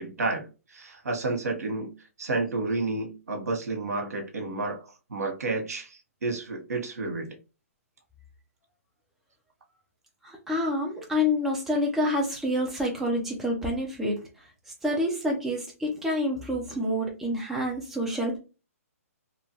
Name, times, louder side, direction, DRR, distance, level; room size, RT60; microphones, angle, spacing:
voice 1, 0.0-1.9 2.2-4.8 5.1-7.4, right 3 dB, 80° right, 3 dB, 0.9 m, -31 dB
voice 2, 10.2-14.2 14.8-18.4, left 1 dB, 5° right, -1 dB, 0.4 m, -28 dB
2.8 x 2.2 x 2.8 m, 0.31 s
hypercardioid pair, 155°, 8 cm